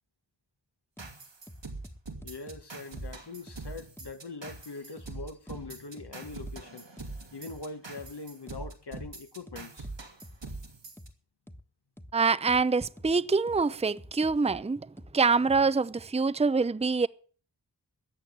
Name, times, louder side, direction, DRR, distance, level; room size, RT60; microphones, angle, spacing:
sound 1, 1.0-1.1 1.5-2.6 3.0-3.1 3.5-3.6 4.0-4.1 4.5-4.6 5.0-5.1 5.5-5.6 6.0-6.6 7.0-7.1 7.5-7.6 8.0-8.1 8.5-8.6 9.0-9.1 9.5-10.6 11.0-11.1 11.5-11.6 12.0-12.1 12.5-12.6 13.0-13.1 13.5-13.6 14.0-14.6 15.0-15.1 15.5-15.6 16.0-16.1, equal, 5° left, 1.3 m, -47 dB
sound 2, 1.0-11.1, right 3 dB, 90° right, 2.4 m, -43 dB
voice 1, 2.2-7.1 7.3-9.9, left 3 dB, 65° left, 1.1 m, -43 dB
voice 2, 12.1-14.8 15.1-17.1, right 4 dB, 15° right, 0.5 m, -25 dB
14.0 x 8.5 x 7.5 m
wide cardioid pair, 45°, 43 cm